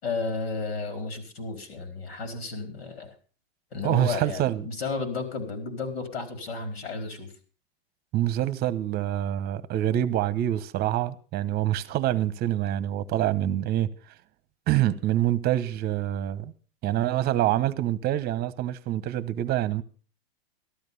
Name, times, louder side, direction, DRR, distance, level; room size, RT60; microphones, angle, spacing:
voice 1, 0.0-3.1 3.7-7.3, left 4 dB, 75° left, 4.7 m, -33 dB
voice 2, 3.8-4.7 8.1-13.9 14.7-16.5 16.8-19.8, right 12 dB, 30° right, 1.0 m, -26 dB
13.5 x 12.5 x 5.4 m
hypercardioid pair, 125°, 31 cm